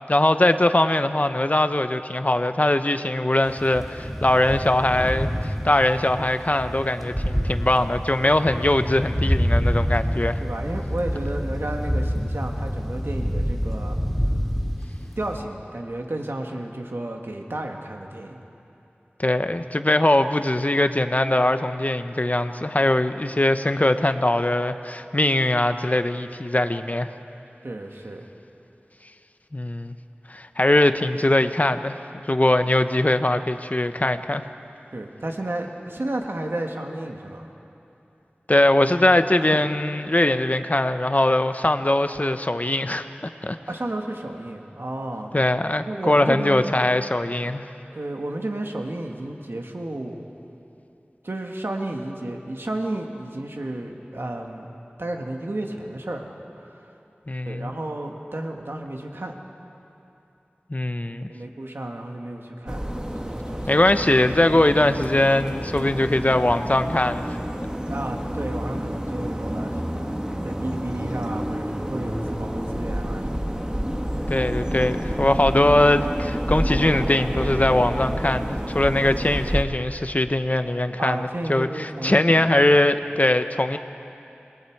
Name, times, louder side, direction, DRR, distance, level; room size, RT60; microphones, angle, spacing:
voice 1, 0.1-10.4 19.2-27.1 29.5-29.9 30.3-32.0 32.3-34.4 38.5-43.1 43.4-43.6 45.3-47.6 57.3-57.7 60.7-61.3 63.7-67.3 74.3-83.8, left 1 dB, 40° left, 9 dB, 0.8 m, -21 dB
sound 1, 3.5-15.4, equal, ahead, 2.4 m, -27 dB
voice 2, 10.4-14.0 15.2-18.4 23.1-23.3 27.6-28.3 34.9-37.5 39.3-39.6 43.7-45.3 45.9-46.7 47.9-50.3 51.2-54.7 55.0-56.3 56.6-56.8 57.5-59.4 61.3-62.9 63.2-63.7 67.9-73.6 81.0-82.6, right 1 dB, 85° right, 2 dB, 1.7 m, -32 dB
sound 2, 62.7-79.6, equal, 20° right, 1.6 m, -29 dB
27.5 x 21.5 x 4.7 m, 2.8 s
wide cardioid pair, 40°, 4 cm